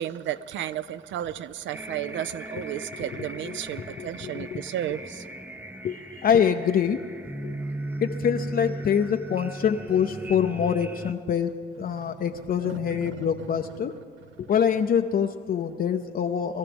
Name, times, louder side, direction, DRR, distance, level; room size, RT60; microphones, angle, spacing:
voice 1, 0.0-5.3 11.9-12.2 12.6-13.3, right 11 dB, 70° right, 15 dB, 0.5 m, -33 dB
sound 1, 1.7-11.1, right 1 dB, 10° right, 0.5 m, -37 dB
voice 2, 3.4-4.6 5.8-7.0 7.4-7.6 8.0-11.5 11.8-14.0 14.4-16.6, left 8 dB, 50° left, 6 dB, 0.5 m, -25 dB
21.5 x 13.0 x 3.5 m, 2.1 s
cardioid pair, 90°, 20 cm